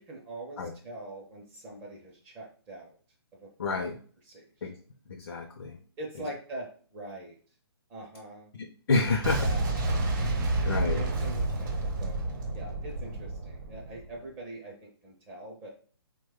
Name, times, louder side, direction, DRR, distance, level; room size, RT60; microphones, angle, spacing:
voice 1, 0.0-3.0 3.3-3.7 4.3-4.5 6.0-7.4 7.9-8.5 9.4-9.9 10.9-11.7 12.0-12.2 12.5-15.7, right 1 dB, 15° right, -2 dB, 0.5 m, -43 dB
voice 2, 3.6-4.0 4.6-4.7 5.1-5.8 8.5-9.5 10.6-11.0, left 3 dB, 65° left, 3 dB, 0.5 m, -29 dB
Boom, 9.2-14.2, right 2 dB, 45° right, 0.8 m, -30 dB
2.9 x 2.2 x 3.4 m, 0.44 s
hypercardioid pair, 145°, 13 cm